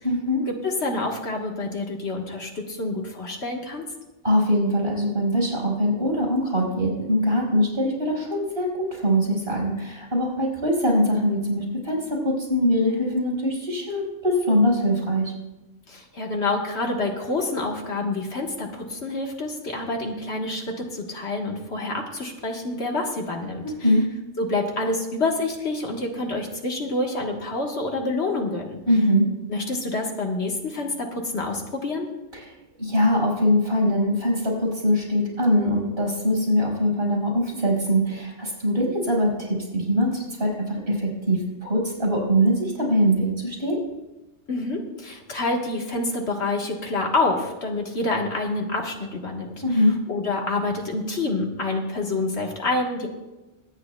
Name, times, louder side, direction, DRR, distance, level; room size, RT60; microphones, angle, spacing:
voice 1, 0.0-0.4 4.2-15.3 23.6-24.0 28.9-29.3 32.3-32.5 32.8-43.8 49.6-50.0, equal, 55° right, -2 dB, 5.4 m, -22 dB
voice 2, 0.6-3.9 15.9-23.6 24.4-28.8 29.5-32.1 44.5-53.1, left 2 dB, 65° left, 0 dB, 1.7 m, -27 dB
23.5 x 9.6 x 2.3 m, 1.1 s
omnidirectional pair, 1.3 m